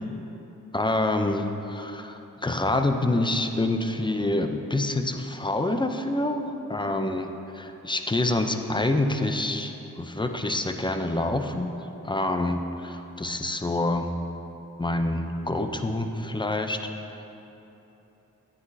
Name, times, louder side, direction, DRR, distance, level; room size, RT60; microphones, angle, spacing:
voice 1, 0.7-11.7 12.0-14.1 14.8-16.8 17.1-17.2, left 2 dB, 15° left, 6 dB, 0.6 m, -27 dB
9.5 x 9.4 x 2.8 m, 3.0 s
cardioid pair, 50°, 34 cm